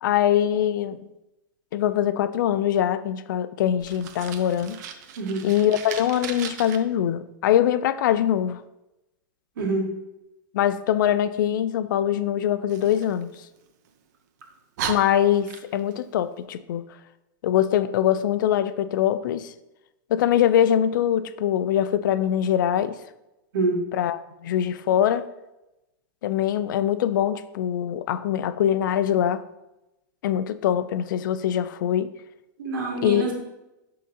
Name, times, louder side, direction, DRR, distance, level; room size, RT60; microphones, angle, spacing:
voice 1, 0.0-1.1 1.7-4.8 5.4-8.6 10.5-13.3 14.9-16.8 17.4-19.5 20.1-23.0 23.9-25.3 26.2-29.4 30.2-32.1 33.0-33.3, left 10 dB, 70° left, 13 dB, 0.4 m, -23 dB
Fire, 3.8-6.8 12.7-13.9 14.4-14.5 14.8-16.0, right 8 dB, 55° right, 0.6 m, -36 dB
voice 2, 9.6-9.9 23.5-23.8 32.6-33.3, right 2 dB, 85° right, -1 dB, 2.0 m, -25 dB
11.0 x 3.8 x 2.7 m, 0.95 s
supercardioid pair, 155°, 11 cm